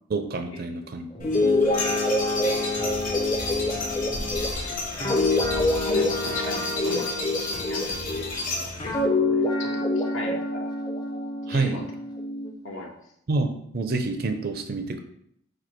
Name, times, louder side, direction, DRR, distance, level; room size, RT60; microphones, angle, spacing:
voice 1, 0.1-1.4 11.5-11.8 13.3-15.0, right 3 dB, 45° right, 7 dB, 0.4 m, -28 dB
Guitar, 1.1-8.3 8.8-12.5, left 2 dB, 20° left, 0.5 m, -26 dB
sound 1, 1.2-9.0, left 2 dB, 40° left, 1.0 m, -32 dB
voice 2, 2.3-2.6 4.5-4.8 5.9-8.2 8.5-10.7 11.5-11.8 12.6-13.0, left 2 dB, 65° left, 0 dB, 0.8 m, -38 dB
4.2 x 2.6 x 4.4 m, 0.70 s
head